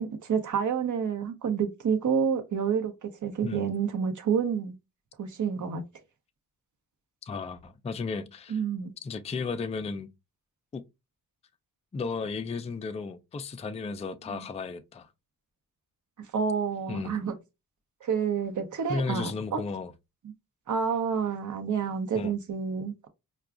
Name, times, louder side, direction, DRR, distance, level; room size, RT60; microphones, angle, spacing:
voice 1, 0.0-4.7 5.2-5.8 8.5-8.9 14.3-14.5 16.3-17.3 18.0-19.6 20.7-23.1, right 6 dB, 55° right, 0.8 m, -29 dB
voice 2, 7.2-8.6 9.0-10.1 10.7-10.8 11.9-15.1 16.9-17.2 18.9-19.9 22.1-22.3, left 4 dB, 20° left, 0.3 m, -34 dB
4.6 x 2.3 x 2.4 m
cardioid pair, 70°, 36 cm